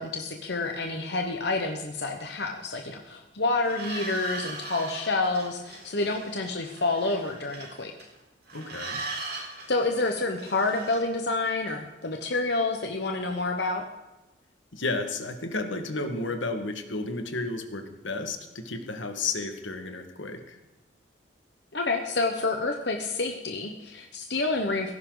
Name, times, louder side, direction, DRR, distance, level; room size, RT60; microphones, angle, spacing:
voice 1, 0.0-7.9 9.7-13.8 21.7-24.9, left 3 dB, 60° left, 4 dB, 1.2 m, -28 dB
sound 1, 3.6-8.2 8.5-11.0, right 3 dB, 50° right, 4.3 m, -39 dB
voice 2, 8.5-9.0 14.7-20.6, left 3 dB, 85° left, 6 dB, 1.8 m, -32 dB
17.0 x 15.0 x 4.0 m, 1.0 s
head